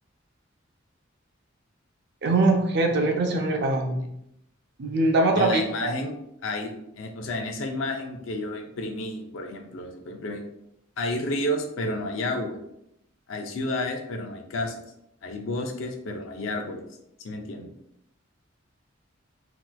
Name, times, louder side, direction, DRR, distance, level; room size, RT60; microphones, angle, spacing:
voice 1, 2.2-4.0 4.8-5.9, right 2 dB, 55° right, 2 dB, 0.5 m, -22 dB
voice 2, 5.3-6.1 6.4-6.7 7.0-10.4 11.0-12.6 13.3-14.8 15.2-16.8 17.2-17.7, left 1 dB, 75° left, 4 dB, 0.5 m, -31 dB
3.2 x 2.9 x 2.2 m, 0.80 s
head